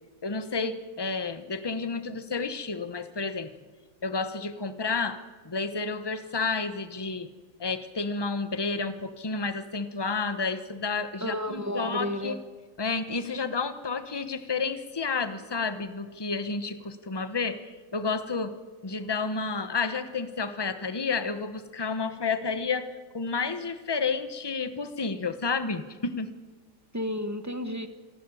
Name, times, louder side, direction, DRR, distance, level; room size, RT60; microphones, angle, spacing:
voice 1, 0.2-3.5 4.0-5.2 5.4-7.3 7.6-12.4 12.8-18.6 18.8-22.9 23.1-26.3, left 4 dB, 20° left, 11 dB, 0.7 m, -31 dB
voice 2, 11.2-12.4 26.9-27.9, left 1 dB, 10° right, 9 dB, 0.8 m, -32 dB
27.0 x 12.0 x 9.9 m, 1.4 s
omnidirectional pair, 2.2 m